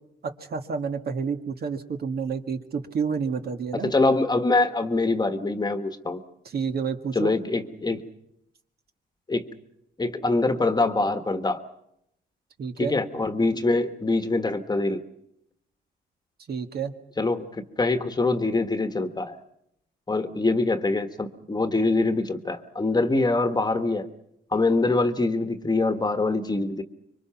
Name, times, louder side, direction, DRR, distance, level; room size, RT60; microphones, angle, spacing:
voice 1, 0.2-3.9 6.5-7.3 12.6-13.0 16.5-16.9, right 6 dB, 50° right, 6 dB, 1.8 m, -29 dB
voice 2, 3.8-6.2 7.1-8.0 9.3-9.5 10.0-11.6 12.8-15.0 17.2-17.5 17.8-19.4 20.1-24.1 24.5-26.8, left 2 dB, 20° left, 8 dB, 1.5 m, -24 dB
26.0 x 23.5 x 5.9 m, 0.80 s
cardioid pair, 90°, 20 cm